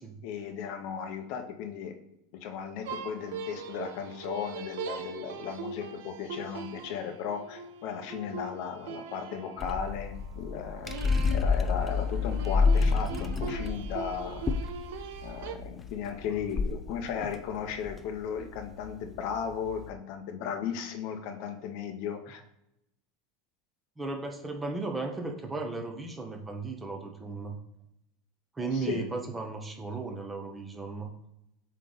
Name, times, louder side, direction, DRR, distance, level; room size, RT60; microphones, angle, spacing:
voice 1, 0.2-2.0 2.3-11.0 11.3-14.5 15.2-22.4 28.7-29.0, left 7 dB, 55° left, 6 dB, 0.8 m, -36 dB
sound 1, 2.8-10.2 10.8-15.6, right 6 dB, 75° right, 0.6 m, -41 dB
sound 2, 9.6-19.9, left 4 dB, 15° left, 0.4 m, -30 dB
voice 2, 24.0-27.6 28.5-31.1, right 3 dB, 10° right, 3 dB, 0.8 m, -35 dB
7.6 x 3.2 x 4.0 m, 0.81 s
supercardioid pair, 150°, 0 cm